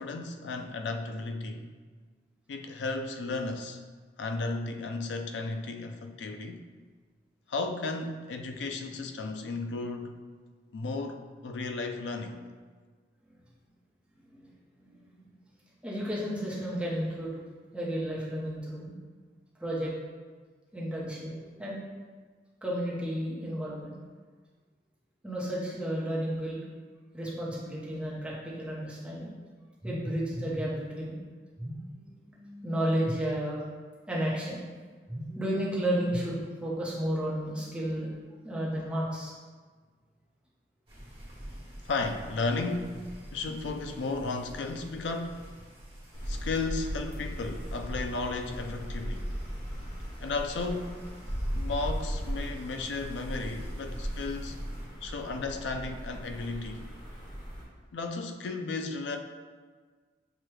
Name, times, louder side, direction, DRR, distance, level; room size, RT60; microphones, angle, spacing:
voice 1, 0.0-1.7 2.5-3.8 4.2-6.6 7.5-10.2 10.7-12.4 41.9-43.0 43.3-45.4 46.3-49.2 50.2-51.0 51.5-54.6 55.0-56.9 57.9-59.2, left 3 dB, 85° left, 5 dB, 0.4 m, -34 dB
voice 2, 14.8-15.2 15.8-17.4 17.7-18.9 19.6-19.9 20.7-21.3 21.6-21.8 22.6-24.0 25.2-26.6 27.1-29.3 29.8-31.2 31.6-33.6 34.1-34.6 35.1-38.1 38.4-39.3, equal, 5° right, -6 dB, 0.8 m, -32 dB
sound 1, 40.9-54.9, equal, 30° right, 1.2 m, -44 dB
sound 2, 46.1-57.6, equal, 25° left, 1.1 m, -38 dB
6.0 x 2.2 x 3.1 m, 1.5 s
head